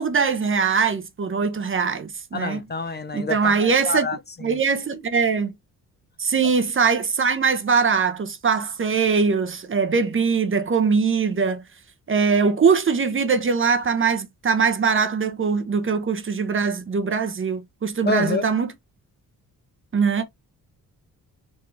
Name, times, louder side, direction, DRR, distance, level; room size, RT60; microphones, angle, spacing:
voice 1, 0.0-2.6 3.1-4.1 4.4-5.5 6.2-11.6 12.1-18.7 19.9-20.2, right 5 dB, 35° right, 1.0 m, -21 dB
voice 2, 2.3-4.6 18.0-18.4, left 3 dB, 30° left, 0.8 m, -27 dB
4.2 x 3.9 x 3.2 m
cardioid pair, 85°, 35 cm